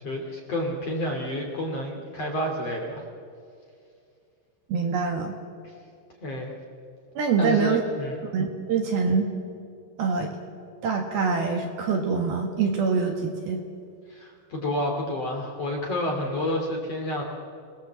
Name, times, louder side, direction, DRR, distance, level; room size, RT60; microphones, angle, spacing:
voice 1, 0.0-3.0 5.6-5.7 6.2-6.5 7.4-8.2 14.1-17.2, left 1 dB, 40° left, 0 dB, 2.8 m, -29 dB
voice 2, 4.7-5.3 7.2-7.8 8.3-9.2 10.0-10.3 10.8-13.6, right 5 dB, 60° right, 3 dB, 3.1 m, -25 dB
27.5 x 19.0 x 7.6 m, 2.3 s
omnidirectional pair, 5.7 m